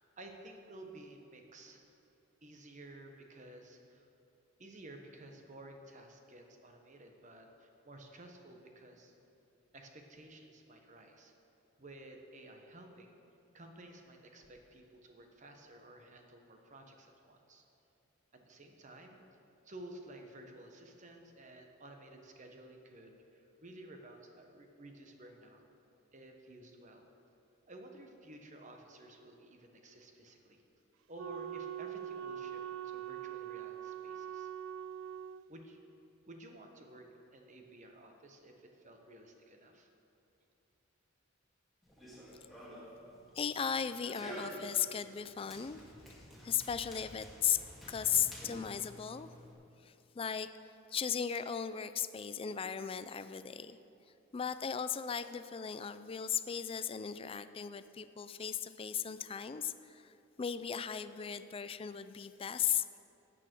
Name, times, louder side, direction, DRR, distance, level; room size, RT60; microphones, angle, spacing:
voice 1, 0.2-1.8 2.4-4.1 4.6-9.1 9.7-11.3 11.8-13.1 13.5-17.6 18.3-19.2 19.6-25.6 26.1-27.1 27.7-30.6 31.1-34.5 35.5-35.8 36.3-39.9, right 1 dB, 40° right, 4 dB, 1.2 m, -53 dB
Wind instrument woodwind instrument, 31.2-35.5, right 10 dB, 90° right, 0.3 m, -43 dB
Run, 41.8-49.5, equal, ahead, 2.1 m, -50 dB
voice 2, 43.3-45.8 46.1-47.6 47.9-49.4 49.8-50.5 50.9-53.8 54.3-63.0, left 8 dB, 30° left, 12 dB, 0.3 m, -36 dB
13.0 x 9.0 x 4.6 m, 2.9 s
head